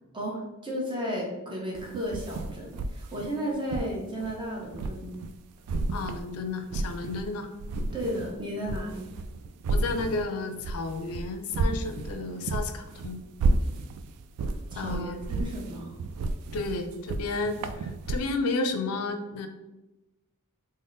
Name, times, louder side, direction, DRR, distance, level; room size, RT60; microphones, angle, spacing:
voice 1, 0.1-5.2 7.9-9.0 14.7-15.9, equal, 20° right, -2 dB, 0.8 m, -34 dB
sound 1, 1.7-5.4 5.7-7.3 7.6-18.2, right 2 dB, 80° right, 0.3 m, -32 dB
voice 2, 5.9-7.5 9.7-13.2 14.8-15.2 16.5-19.5, left 3 dB, 70° left, 7 dB, 0.4 m, -32 dB
3.5 x 2.1 x 3.8 m, 1.0 s
head